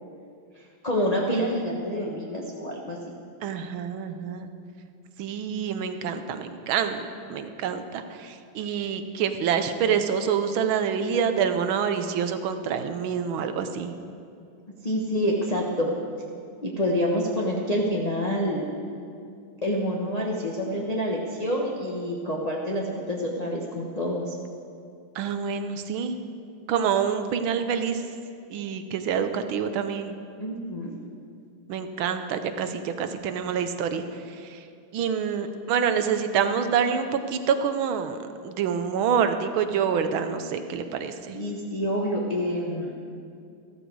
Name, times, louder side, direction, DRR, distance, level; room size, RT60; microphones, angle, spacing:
voice 1, 0.6-3.0 14.8-15.9 16.6-18.7 19.6-24.4 30.4-31.0 41.3-42.9, equal, 25° left, -3 dB, 1.0 m, -27 dB
voice 2, 3.4-4.5 5.2-13.9 25.2-26.2 26.7-28.0 28.5-30.2 31.7-34.6 34.9-38.2 38.4-41.4, right 7 dB, 85° right, 8 dB, 1.6 m, -27 dB
14.0 x 13.0 x 4.7 m, 2.4 s
omnidirectional pair, 2.2 m